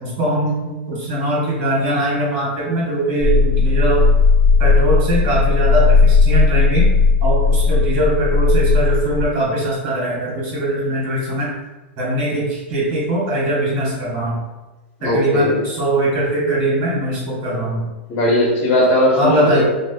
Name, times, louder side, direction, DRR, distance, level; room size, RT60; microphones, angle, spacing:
voice 1, 0.0-4.0 4.6-6.9 7.2-11.5 12.0-14.4 15.0-17.8 19.1-19.6, right 1 dB, 45° right, -6 dB, 1.3 m, -21 dB
sound 1, 3.2-9.3, left 4 dB, 15° right, 0.9 m, -15 dB
voice 2, 15.0-15.6 18.1-19.6, left 1 dB, 40° left, -3 dB, 0.8 m, -17 dB
3.1 x 2.1 x 2.2 m, 1.1 s
hypercardioid pair, 120°, 6 cm